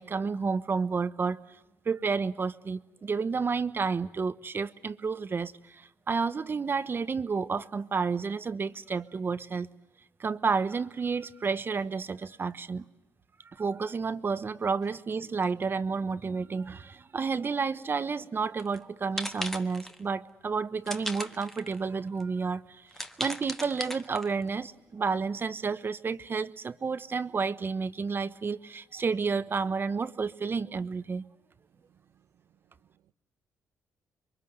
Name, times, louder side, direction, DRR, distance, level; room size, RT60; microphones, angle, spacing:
voice 1, 0.0-1.4 1.8-9.7 10.2-12.8 13.5-22.9 23.2-31.3, right 5 dB, 35° right, 1.1 m, -31 dB
sound 1, 18.6-18.8 19.2-20.0 20.9-21.8 22.2-22.3 22.9-24.5, equal, 5° left, 1.5 m, -37 dB
voice 2, 31.9-33.1, right 10 dB, 70° right, 0.9 m, -67 dB
27.0 x 23.0 x 8.0 m
cardioid pair, 75°, 6 cm